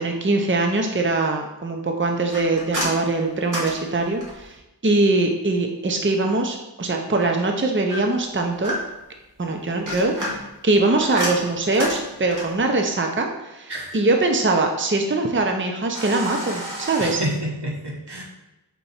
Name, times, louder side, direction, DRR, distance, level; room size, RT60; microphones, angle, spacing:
voice 1, 0.0-4.6 4.8-8.8 9.4-10.4 10.6-17.2, right 2 dB, 30° right, 3 dB, 0.7 m, -22 dB
sound 1, 2.3-4.6 7.9-9.1 9.7-12.6 15.9-17.1, equal, 50° right, 2.0 m, -31 dB
voice 2, 17.0-18.2, right 1 dB, 75° right, -1 dB, 1.3 m, -28 dB
4.6 x 4.0 x 5.5 m, 1.0 s
wide cardioid pair, 50°, 41 cm